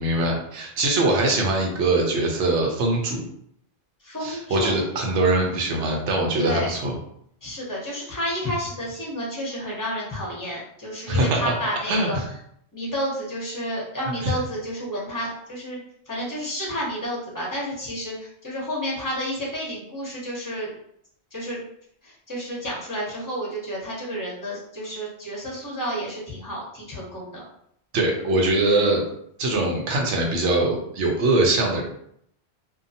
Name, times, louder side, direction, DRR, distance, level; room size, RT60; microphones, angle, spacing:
voice 1, 0.0-3.2 4.2-6.9 11.1-11.5 11.9-12.3 14.2-14.3 27.9-29.0 29.4-31.8, right 2 dB, 85° right, 0 dB, 1.0 m, -22 dB
voice 2, 4.0-4.8 5.4-5.9 6.4-6.7 7.4-12.2 12.7-15.8 16.1-20.7 21.3-21.6 22.0-27.4, equal, 20° left, -4 dB, 0.7 m, -31 dB
2.7 x 2.2 x 2.7 m, 0.69 s
omnidirectional pair, 1.2 m